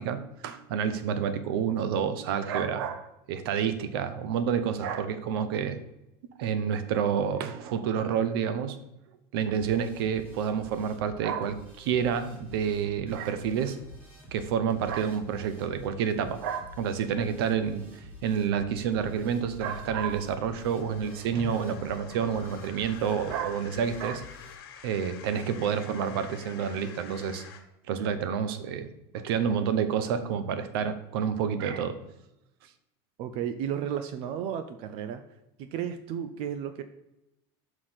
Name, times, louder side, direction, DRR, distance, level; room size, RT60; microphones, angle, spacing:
voice 1, 0.0-5.8 6.4-8.8 9.3-13.8 14.3-17.9 18.2-24.2 24.8-27.4 27.9-32.0, right 7 dB, 80° right, 11 dB, 0.9 m, -29 dB
sound 1, 9.5-24.6, left 1 dB, 15° right, 2.0 m, -49 dB
sound 2, 13.7-14.4 18.4-27.6, left 7 dB, 80° left, 1.6 m, -49 dB
voice 2, 33.2-35.2 35.6-36.8, right 9 dB, 50° right, 10 dB, 0.5 m, -33 dB
5.9 x 5.0 x 5.7 m, 0.89 s
supercardioid pair, 160°, 12 cm